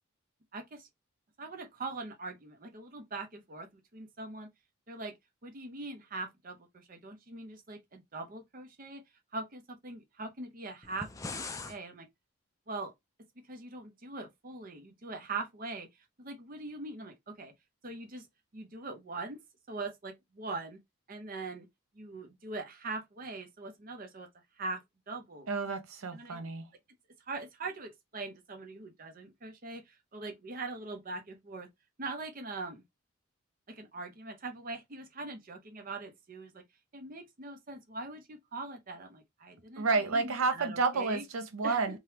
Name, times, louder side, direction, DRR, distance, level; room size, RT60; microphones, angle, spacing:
voice 1, 0.5-0.9 1.4-4.5 4.9-5.1 5.4-9.0 9.3-12.1 12.7-12.9 13.5-15.9 16.2-17.5 17.8-18.3 18.5-19.4 19.7-20.8 21.1-21.7 21.9-24.3 24.6-25.5 26.1-26.5 27.3-31.7 32.0-32.8 33.7-36.6 36.9-41.2 41.6-42.0, right 3 dB, 40° right, 0.7 m, -42 dB
sound 1, 10.8-11.8, left 3 dB, 15° left, 0.3 m, -40 dB
voice 2, 25.5-26.7 39.8-42.0, right 4 dB, 80° right, 0.6 m, -30 dB
3.3 x 2.3 x 2.8 m
head